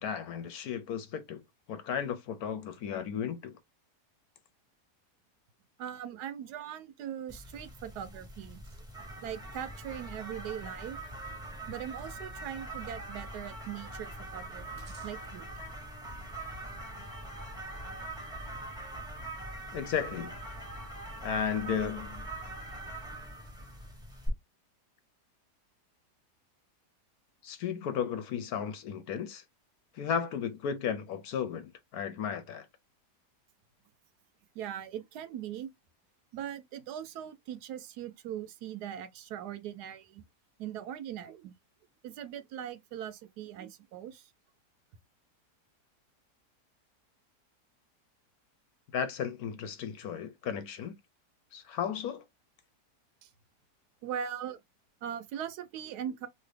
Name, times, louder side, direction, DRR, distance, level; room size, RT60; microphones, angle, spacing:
voice 1, 0.0-1.4 1.7-3.6 19.7-20.4 21.2-22.3 27.4-29.4 29.9-32.7 48.9-50.9 51.5-52.2, left 7 dB, 70° left, 1.0 m, -34 dB
voice 2, 5.8-8.6 9.2-11.0 11.7-15.5 34.6-35.7 36.3-40.2 40.6-41.5 42.0-44.3 53.2-53.3 54.0-54.6 55.0-56.3, right 9 dB, 75° right, 1.1 m, -40 dB
sound 1, 7.3-24.3, right 1 dB, 5° right, 0.8 m, -43 dB
2.9 x 2.7 x 3.2 m
omnidirectional pair, 1.8 m